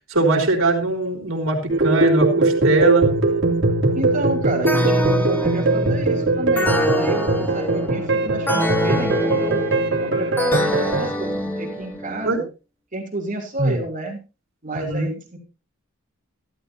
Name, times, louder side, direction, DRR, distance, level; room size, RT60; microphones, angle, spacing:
voice 1, 0.1-3.1 12.2-12.4 13.6-13.8 14.7-15.1, right 2 dB, 80° right, 1 dB, 4.0 m, -20 dB
sound 1, 1.7-11.1, right 2 dB, 60° right, 3.1 m, -21 dB
voice 2, 3.9-9.6 10.0-12.4 12.9-14.2 14.6-15.4, right 1 dB, 40° right, 1 dB, 3.3 m, -30 dB
sound 2, 4.7-12.3, equal, 10° left, 1.5 m, -25 dB
14.5 x 13.0 x 2.8 m, 0.30 s
head